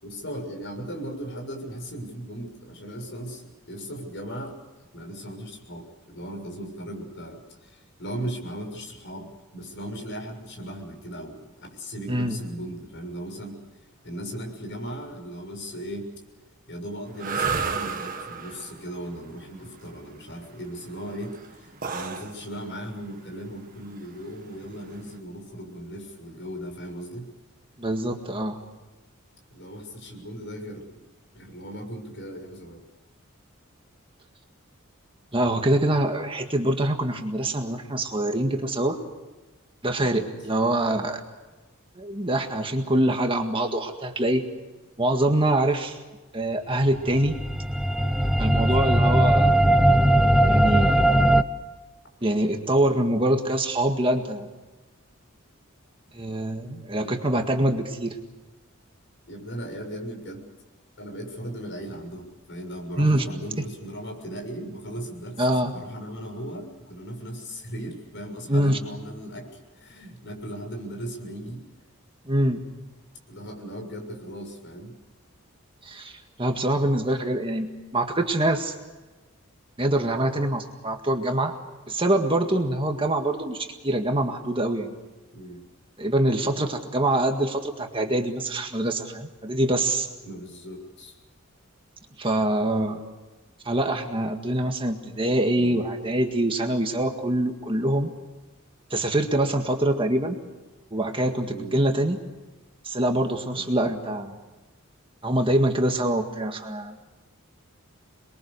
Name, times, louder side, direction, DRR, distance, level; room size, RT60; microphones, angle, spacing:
voice 1, 0.0-9.3 9.5-13.6 14.0-16.1 16.7-27.3 29.5-31.0 31.3-32.8 40.0-40.3 48.2-48.9 57.0-57.1 59.3-60.5 61.0-65.4 65.7-71.6 73.3-74.9 82.5-82.7 85.3-85.6 90.2-91.2 101.4-101.8 103.5-103.9, right 1 dB, 55° left, 2 dB, 6.6 m, -37 dB
sound 1, 17.1-25.2, right 5 dB, 40° right, 1.7 m, -33 dB
voice 2, 27.8-28.6 35.3-39.0 39.8-41.2 42.0-44.5 45.0-46.0 46.3-47.4 48.4-49.5 50.5-51.0 52.2-54.5 56.1-58.2 63.0-63.3 65.4-65.7 68.5-68.8 72.3-72.6 75.8-78.7 79.8-81.5 81.9-85.0 86.0-90.1 92.2-93.0 93.7-98.1 98.9-100.4 100.9-102.2 102.8-104.4 105.2-107.0, right 1 dB, 25° right, 4 dB, 1.8 m, -24 dB
sound 2, 47.1-51.4, right 1 dB, ahead, 0.8 m, -19 dB
28.0 x 22.5 x 6.7 m, 1.2 s
head